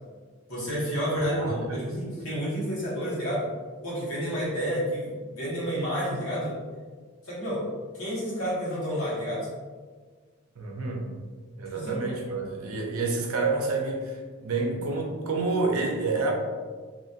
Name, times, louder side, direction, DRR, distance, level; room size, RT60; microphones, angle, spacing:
voice 1, 0.5-3.4 3.8-6.5 7.2-7.6 7.9-9.5 11.7-12.0, equal, 75° left, -9 dB, 1.5 m, -30 dB
voice 2, 1.2-1.8 10.6-11.0 11.6-16.3, right 3 dB, 80° right, 1 dB, 0.6 m, -29 dB
2.8 x 2.8 x 2.5 m, 1.5 s
head